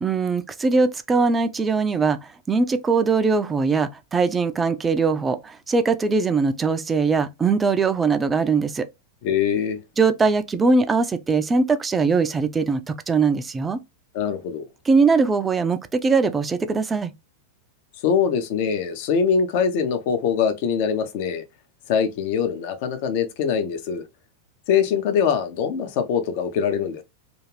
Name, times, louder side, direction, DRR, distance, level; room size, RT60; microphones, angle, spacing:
voice 1, 0.0-2.2 2.5-8.9 10.0-13.8 14.9-17.1, right 4 dB, 15° right, 0.3 m, -21 dB
voice 2, 9.2-9.8 14.1-14.7 18.0-21.4 21.9-24.0 24.7-27.0, left 7 dB, 50° left, 0.5 m, -23 dB
2.5 x 2.4 x 3.1 m
figure-of-eight pair, 90°, 0 cm